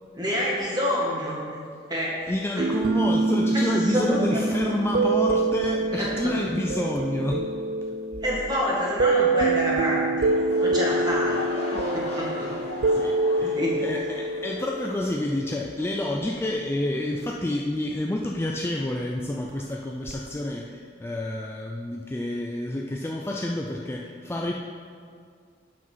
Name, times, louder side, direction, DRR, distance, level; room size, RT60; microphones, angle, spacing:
voice 1, 0.1-1.4 1.9-2.7 3.8-4.4 5.9-6.3 8.2-11.4 11.7-12.5 13.4-13.8, equal, 25° right, -5 dB, 1.9 m, -28 dB
voice 2, 2.3-7.5 11.1-11.2 12.9-24.5, left 1 dB, 15° left, 0 dB, 0.4 m, -29 dB
sound 1, 2.6-15.7 20.1-20.3, right 2 dB, 60° right, 0.4 m, -25 dB
sound 2, 10.3-15.3 15.6-15.9 16.4-16.5, left 1 dB, 40° left, 1.4 m, -38 dB
7.5 x 6.1 x 5.6 m, 2.1 s
head